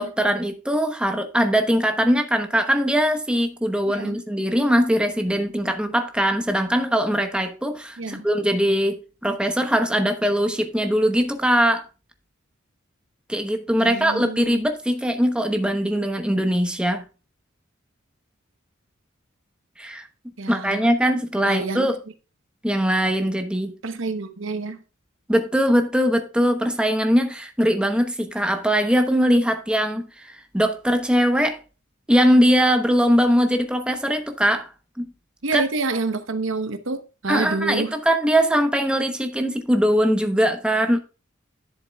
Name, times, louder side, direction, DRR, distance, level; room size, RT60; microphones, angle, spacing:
voice 1, 0.0-9.0 9.2-11.8 13.3-17.0 19.8-20.1 20.5-22.0 22.6-23.7 25.3-31.6 32.1-34.7 35.0-35.1 35.5-35.6 37.3-41.0, equal, 5° right, 0.9 m, -21 dB
voice 2, 3.8-4.2 8.0-8.3 13.8-14.7 20.4-20.9 21.4-21.9 23.8-24.8 35.4-37.9, right 3 dB, 70° right, 0.9 m, -28 dB
10.5 x 7.5 x 2.3 m
head